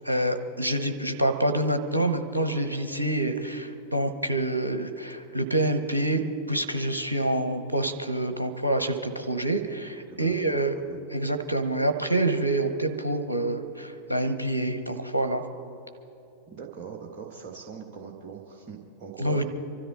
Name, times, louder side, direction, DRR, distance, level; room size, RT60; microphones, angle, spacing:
voice 1, 0.0-10.7 11.1-15.4 19.2-19.4, right 1 dB, 85° right, 12 dB, 0.9 m, -27 dB
voice 2, 10.1-10.6 10.9-11.0 16.5-19.4, right 6 dB, 40° right, -1 dB, 1.6 m, -41 dB
25.0 x 13.0 x 4.0 m, 2.9 s
figure-of-eight pair, 90°, 0 cm